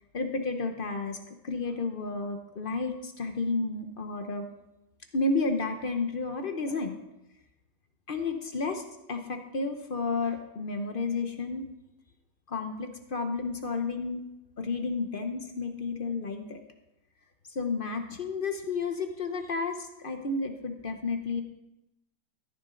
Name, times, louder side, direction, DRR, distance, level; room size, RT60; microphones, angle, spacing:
voice 1, 0.1-4.5 5.1-7.0 8.1-8.8 9.1-11.6 12.5-14.2 14.6-16.6 17.5-21.4, left 3 dB, 50° left, 6 dB, 0.6 m, -31 dB
14.0 x 9.7 x 3.8 m, 0.91 s
omnidirectional pair, 2.1 m